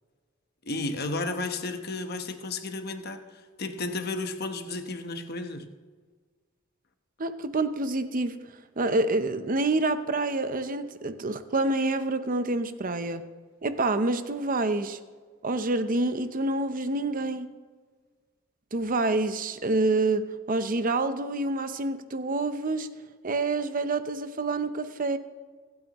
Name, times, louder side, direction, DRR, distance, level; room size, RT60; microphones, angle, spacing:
voice 1, 0.6-5.7, left 2 dB, 50° left, 6 dB, 1.0 m, -33 dB
voice 2, 7.2-8.4 8.8-13.2 13.6-15.0 15.4-17.5 18.7-22.9 23.2-25.2, right 2 dB, 40° right, 10 dB, 0.7 m, -27 dB
24.5 x 8.8 x 3.0 m, 1.5 s
head